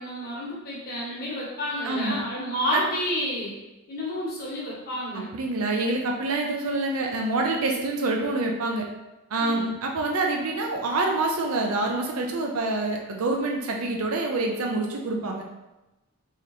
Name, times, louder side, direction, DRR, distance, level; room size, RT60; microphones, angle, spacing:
voice 1, 0.0-3.6 3.9-5.3 9.4-9.7, equal, 40° left, -6 dB, 1.1 m, -30 dB
voice 2, 1.8-2.2 2.7-2.8 5.3-8.9 9.3-15.4, right 2 dB, 75° right, 1 dB, 0.5 m, -26 dB
3.7 x 3.2 x 2.8 m, 1.0 s
head